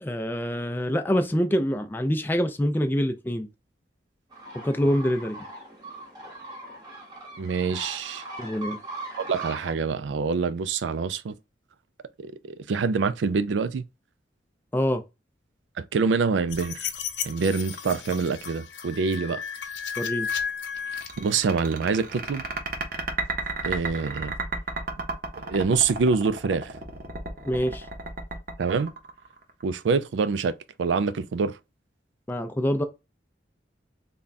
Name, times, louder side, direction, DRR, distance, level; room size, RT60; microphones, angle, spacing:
voice 1, 0.0-3.5 4.6-5.5 8.4-8.8 14.7-15.0 20.0-20.3 27.5-27.9 32.3-32.8, equal, 10° left, 0.4 m, -25 dB
sound 1, 4.3-9.7, right 2 dB, 20° right, 1.0 m, -40 dB
voice 2, 7.4-8.2 9.2-11.3 12.2-13.8 15.8-16.9 17.2-19.4 21.2-22.4 23.6-24.3 25.4-26.7 28.6-28.9 29.6-30.5 30.8-31.5, right 5 dB, 80° right, 0.4 m, -25 dB
sound 2, 16.5-21.7, left 7 dB, 75° left, 0.7 m, -34 dB
sound 3, 20.9-29.6, right 3 dB, 50° right, 0.7 m, -33 dB
3.5 x 2.2 x 3.9 m
head